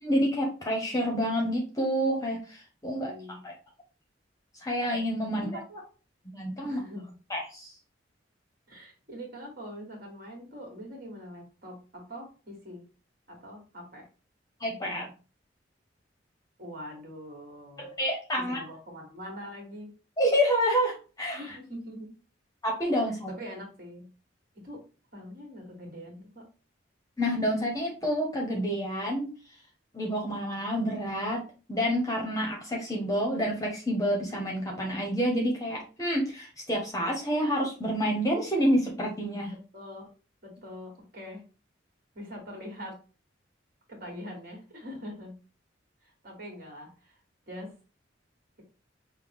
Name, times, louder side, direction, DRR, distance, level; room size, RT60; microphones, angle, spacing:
voice 1, 0.0-3.5 4.6-5.5 6.3-6.8 7.3-7.7 14.6-15.1 17.8-18.6 20.2-21.4 22.6-23.3 27.2-29.3 29.9-31.4 31.7-39.5, equal, 20° left, -1 dB, 0.9 m, -28 dB
voice 2, 2.9-3.4 5.3-5.8 6.6-7.2 8.7-12.8 13.3-14.1 16.6-18.0 18.4-19.9 21.3-22.1 23.1-24.1 24.6-24.8 25.1-26.4 39.5-40.1 40.4-41.4 42.1-43.0 43.9-45.3 46.0-47.2 47.5-47.7, equal, 50° right, 1 dB, 1.7 m, -43 dB
5.6 x 2.2 x 3.5 m, 0.35 s
head